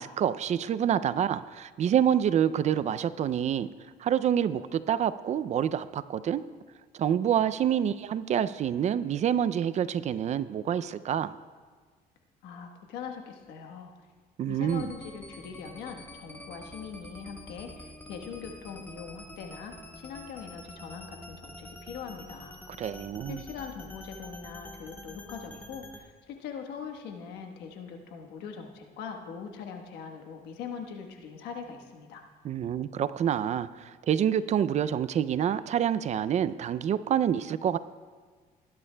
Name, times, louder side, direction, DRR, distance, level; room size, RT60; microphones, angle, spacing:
voice 1, 0.0-3.7 4.0-6.4 6.9-11.3 14.4-14.9 22.7-23.4 32.4-37.8, right 9 dB, 45° right, 15 dB, 0.4 m, -27 dB
voice 2, 12.4-13.9 14.5-19.7 20.0-22.6 23.3-32.2, left 6 dB, 90° left, 3 dB, 1.3 m, -42 dB
sound 1, 14.7-26.0, left 1 dB, 10° left, 1.1 m, -47 dB
18.5 x 11.0 x 2.2 m, 1.5 s
cardioid pair, 110°, 17 cm